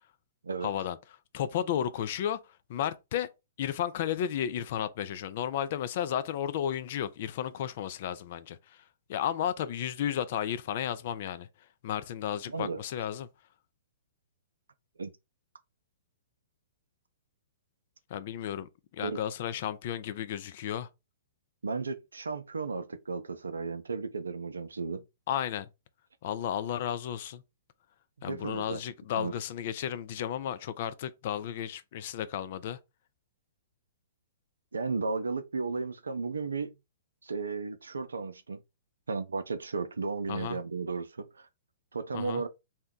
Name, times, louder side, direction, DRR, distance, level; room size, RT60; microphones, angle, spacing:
voice 1, 0.6-1.0 1.3-2.4 2.7-3.3 3.6-8.8 9.1-11.5 11.8-13.3 18.1-20.9 25.3-25.7 26.2-27.4 28.2-32.8 40.3-40.6 42.1-42.4, left 10 dB, 55° left, 0.4 m, -33 dB
voice 2, 12.5-12.8 15.0-15.1 19.0-19.2 21.6-25.0 28.2-28.8 29.2-29.3 34.7-36.7 37.2-38.6 39.1-41.5 41.9-42.5, right 4 dB, 85° right, 0.4 m, -34 dB
2.8 x 2.2 x 3.6 m
hypercardioid pair, 120°, 0 cm